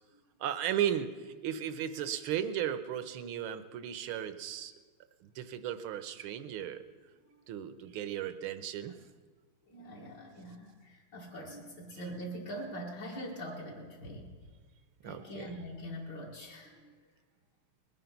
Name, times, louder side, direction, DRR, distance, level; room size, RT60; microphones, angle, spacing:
voice 1, 0.4-4.7 5.2-6.8 7.5-9.0 15.0-15.5, right 10 dB, 80° right, 12 dB, 1.6 m, -35 dB
voice 2, 9.7-14.4 15.0-16.9, equal, 60° left, -4 dB, 2.4 m, -43 dB
20.5 x 9.3 x 5.8 m, 1.4 s
omnidirectional pair, 2.2 m